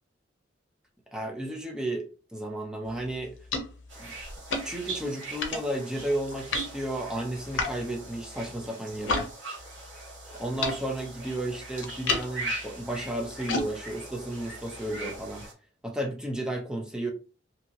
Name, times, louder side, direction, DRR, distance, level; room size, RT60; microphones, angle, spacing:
voice 1, 1.1-3.3 4.0-4.1 4.6-9.3 10.4-15.4 15.8-17.1, right 1 dB, 5° right, 0.6 m, -33 dB
sound 1, 2.8-9.3 9.6-15.5, left 3 dB, 80° left, 0.6 m, -36 dB
sound 2, 3.9-15.5, right 2 dB, 75° right, 1.3 m, -41 dB
2.8 x 2.7 x 2.6 m
head